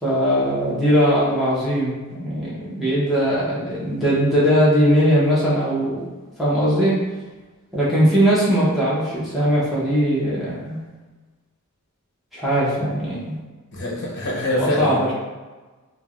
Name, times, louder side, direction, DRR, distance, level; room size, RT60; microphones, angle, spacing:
voice 1, 0.0-6.1 6.4-7.0 7.7-10.8 12.3-13.4 14.5-15.1, equal, ahead, -10 dB, 0.7 m, -20 dB
voice 2, 13.7-15.1, left 1 dB, 50° left, -3 dB, 0.6 m, -24 dB
3.3 x 2.1 x 2.4 m, 1.3 s
head